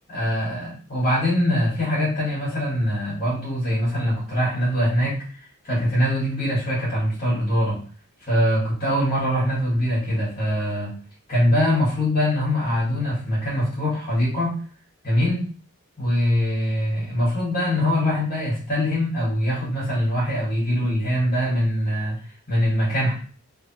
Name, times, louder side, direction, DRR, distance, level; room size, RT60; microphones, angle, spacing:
voice 1, 0.1-5.2 5.6-7.8 8.2-10.9 11.3-14.6 15.0-15.4 16.0-22.2 22.5-23.1, equal, 35° left, -7 dB, 2.1 m, -23 dB
3.5 x 3.5 x 2.9 m, 0.42 s
head